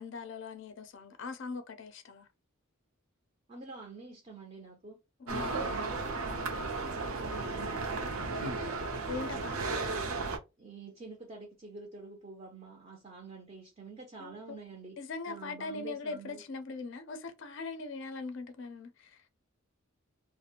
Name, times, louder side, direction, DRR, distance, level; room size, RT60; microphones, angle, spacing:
voice 1, 0.0-2.3 5.2-5.6 9.1-9.7 14.2-14.6 15.0-19.2, left 4 dB, 55° left, 0.4 m, -41 dB
voice 2, 3.5-5.0 5.3-8.9 9.3-10.0 10.6-15.0 15.3-16.4, right 3 dB, 30° right, 0.4 m, -47 dB
sound 1, 5.3-10.4, right 3 dB, 80° right, 0.6 m, -34 dB
2.4 x 2.0 x 2.7 m
head